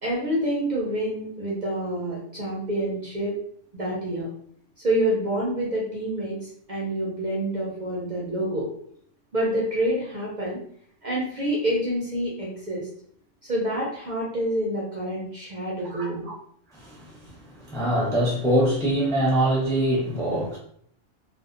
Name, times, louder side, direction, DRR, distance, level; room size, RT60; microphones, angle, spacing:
voice 1, 0.0-3.3 3.7-4.3 4.8-8.7 9.3-10.6 11.0-12.9 13.4-16.3, right 1 dB, 50° right, -5 dB, 0.6 m, -27 dB
voice 2, 15.9-16.3 16.7-20.6, right 1 dB, 5° left, -4 dB, 0.4 m, -24 dB
2.6 x 2.1 x 2.4 m, 0.64 s
omnidirectional pair, 1.3 m